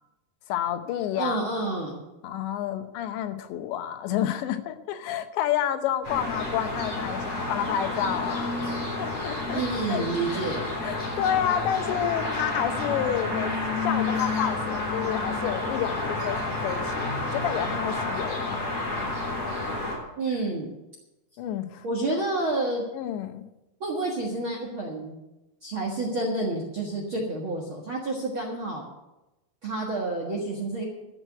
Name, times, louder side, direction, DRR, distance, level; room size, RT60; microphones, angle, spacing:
voice 1, 0.5-1.4 2.2-9.6 9.9-10.0 10.3-10.4 10.8-13.5 13.8-18.8 21.4-22.2 22.9-23.5, left 10 dB, 90° left, 9 dB, 3.2 m, -30 dB
voice 2, 1.2-2.0 9.5-10.8 19.6-19.8 20.2-20.7 21.8-22.8 23.8-25.1 25.6-28.8 29.6-30.8, right 2 dB, 60° right, -1 dB, 1.3 m, -29 dB
sound 1, 6.0-19.9, left 2 dB, 40° left, 4.3 m, -30 dB
13.0 x 6.3 x 9.0 m, 0.97 s
omnidirectional pair, 5.0 m